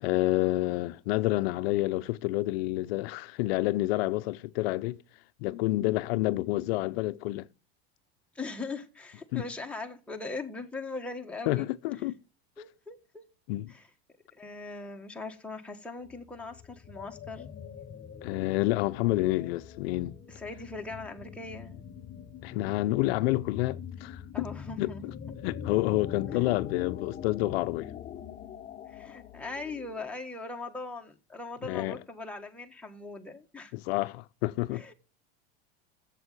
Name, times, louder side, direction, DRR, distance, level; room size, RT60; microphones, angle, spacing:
voice 1, 0.0-5.0 5.4-7.5 9.3-9.4 11.5-12.2 13.5-13.7 18.2-20.2 22.4-24.5 24.8-25.1 25.4-27.9 31.6-32.0 33.7-34.9, left 18 dB, 70° left, 0.6 m, -29 dB
voice 2, 8.3-11.7 12.0-12.1 12.6-13.2 13.7-13.8 14.3-17.5 20.3-21.8 24.3-25.1 26.3-26.4 28.9-33.7 34.7-34.9, left 3 dB, 5° left, 1.5 m, -40 dB
sound 1, 16.0-30.2, left 8 dB, 25° left, 0.9 m, -43 dB
7.8 x 7.6 x 6.8 m
supercardioid pair, 120°, 31 cm